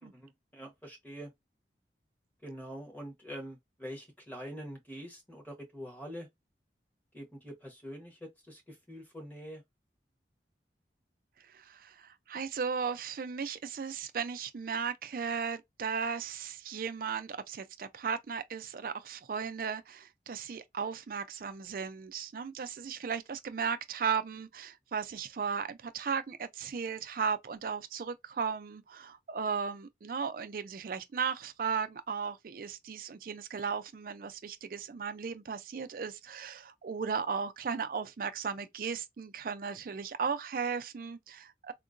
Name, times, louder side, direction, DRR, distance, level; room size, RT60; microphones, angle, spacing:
voice 1, 0.0-1.3 2.4-6.3 7.1-9.6, equal, 10° left, 1.0 m, -45 dB
voice 2, 11.4-41.7, right 6 dB, 50° right, 0.4 m, -36 dB
3.7 x 2.1 x 2.5 m
head